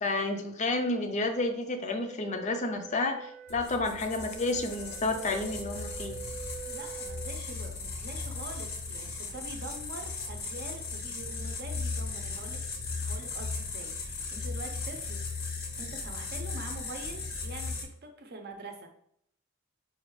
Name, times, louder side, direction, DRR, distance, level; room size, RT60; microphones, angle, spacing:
voice 1, 0.0-6.2, left 2 dB, 35° left, 6 dB, 0.5 m, -30 dB
Wind instrument woodwind instrument, 1.9-7.4, right 7 dB, 85° right, 0.7 m, -46 dB
sound 1, 3.5-17.8, left 4 dB, 75° left, 0.8 m, -37 dB
voice 2, 6.6-12.6 13.0-15.2 15.8-18.9, right 2 dB, 50° right, 4 dB, 0.6 m, -44 dB
5.1 x 2.3 x 3.1 m, 0.68 s
head